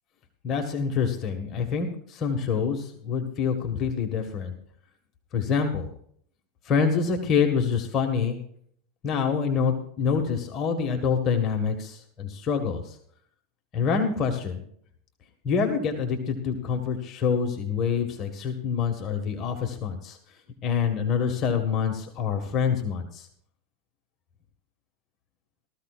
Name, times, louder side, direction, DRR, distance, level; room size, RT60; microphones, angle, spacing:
voice 1, 0.4-4.5 5.3-5.9 6.7-8.4 9.0-13.0 13.7-14.6 15.4-20.2 20.6-23.3, left 6 dB, 35° left, 3 dB, 1.7 m, -26 dB
19.0 x 14.0 x 2.5 m, 0.63 s
supercardioid pair, 130°, 0 cm